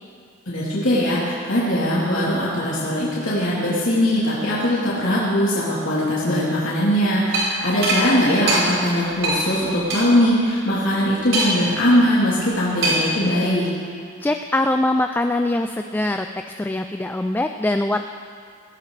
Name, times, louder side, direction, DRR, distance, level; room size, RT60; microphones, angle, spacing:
voice 1, 0.5-13.7, equal, 75° left, -9 dB, 3.4 m, -20 dB
sound 1, 7.3-7.5 7.8-8.0 8.5-8.6 9.2-9.4 9.9-10.0 11.3-11.7 12.8-13.1, right 2 dB, 85° right, 4.6 m, -21 dB
voice 2, 14.2-18.0, left 1 dB, 10° left, 6 dB, 0.3 m, -23 dB
19.5 x 16.5 x 3.3 m, 2.3 s
head